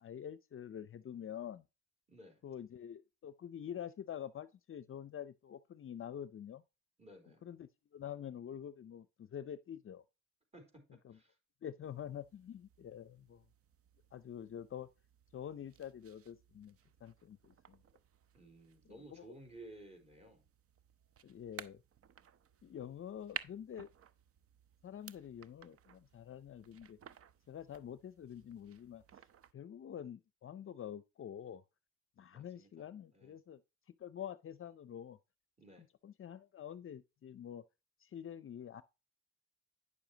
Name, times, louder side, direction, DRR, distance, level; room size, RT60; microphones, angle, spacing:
voice 1, 0.0-1.6 2.4-6.6 7.4-10.0 11.0-11.2 11.6-13.4 14.1-14.9 15.3-16.8 17.0-17.8 19.1-19.3 21.2-21.8 22.6-23.9 24.8-27.0 27.5-29.0 29.5-31.6 32.2-33.6 34.0-35.2 35.8-37.6 38.0-38.8, left 9 dB, 45° left, 0.6 m, -47 dB
voice 2, 2.1-2.4 7.0-7.4 10.5-11.4 18.3-20.5 32.3-32.9 33.1-33.4 35.6-35.9, right 1 dB, 20° right, 4.0 m, -56 dB
sound 1, 11.8-29.5, right 8 dB, 50° right, 0.7 m, -55 dB
9.7 x 6.9 x 2.8 m
cardioid pair, 90°, 30 cm